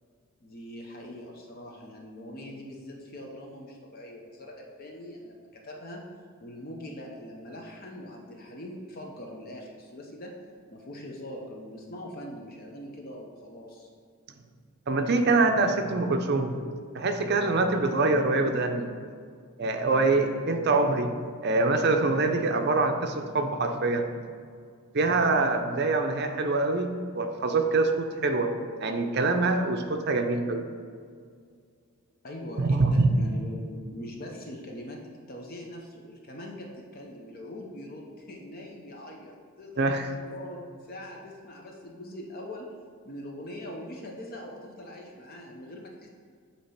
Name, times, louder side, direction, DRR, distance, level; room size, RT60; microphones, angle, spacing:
voice 1, 0.4-6.0 6.4-10.3 10.7-13.9 32.2-35.0 35.3-42.7 43.0-46.1, left 1 dB, 40° left, 0 dB, 0.7 m, -42 dB
voice 2, 14.9-16.5 16.9-18.9 19.6-21.1 21.4-24.1 24.9-30.7 32.6-33.1 39.8-40.1, right 3 dB, 45° right, 5 dB, 0.6 m, -25 dB
8.4 x 2.9 x 5.7 m, 2.1 s
head